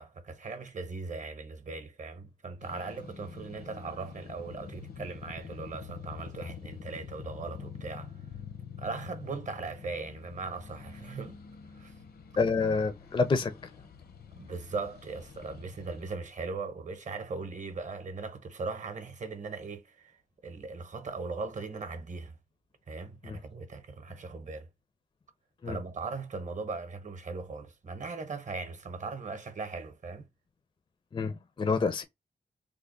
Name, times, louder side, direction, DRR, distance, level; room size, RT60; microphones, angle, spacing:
voice 1, 0.0-8.2 8.8-11.4 11.7-12.0 14.3-20.2 20.4-22.3 22.9-24.7 25.7-30.3, right 4 dB, 50° right, 0.8 m, -39 dB
sound 1, 2.6-16.1, left 6 dB, 70° left, 0.7 m, -46 dB
voice 2, 12.4-13.5 23.2-23.4 25.6-25.8 31.1-32.0, left 4 dB, 30° left, 0.4 m, -28 dB
3.3 x 2.1 x 3.7 m
wide cardioid pair, 110°, 17 cm